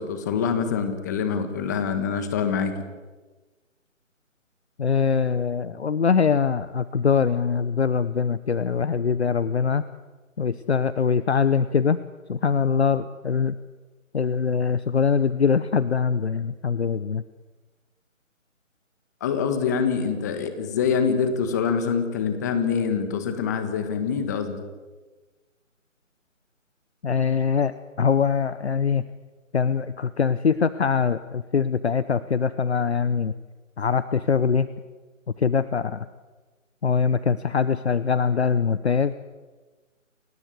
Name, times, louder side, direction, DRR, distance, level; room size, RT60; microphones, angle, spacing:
voice 1, 0.0-2.7 19.2-24.6, left 6 dB, 15° left, 9 dB, 1.5 m, -25 dB
voice 2, 4.8-9.8 10.4-12.0 12.3-13.6 14.1-17.2 27.0-29.0 29.5-33.3 33.8-34.7 35.4-36.1 36.8-39.1, left 6 dB, 55° left, 15 dB, 1.0 m, -23 dB
29.0 x 15.0 x 9.5 m, 1.3 s
figure-of-eight pair, 160°, 40 cm